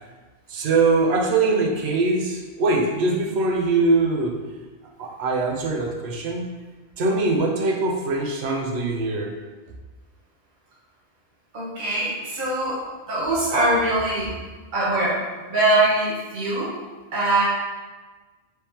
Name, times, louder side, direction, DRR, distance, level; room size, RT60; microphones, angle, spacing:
voice 1, 0.5-4.4 5.0-6.4 7.0-9.3, right 3 dB, 80° right, 1 dB, 1.0 m, -22 dB
voice 2, 11.5-12.8 13.1-14.3 14.7-15.1 15.5-16.7 17.1-17.5, right 2 dB, 50° right, -7 dB, 1.0 m, -22 dB
4.8 x 3.3 x 2.9 m, 1.3 s
omnidirectional pair, 1.1 m